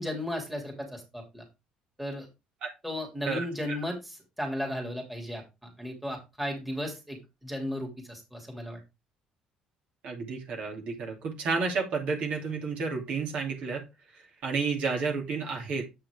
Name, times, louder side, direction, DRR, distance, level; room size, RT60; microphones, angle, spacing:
voice 1, 0.0-1.4 2.0-2.3 2.8-8.8, left 1 dB, 5° right, 0 dB, 2.7 m, -35 dB
voice 2, 10.0-13.8 14.1-15.8, right 4 dB, 60° right, 0 dB, 2.7 m, -31 dB
7.8 x 5.9 x 3.6 m, 0.25 s
cardioid pair, 135°, 2 cm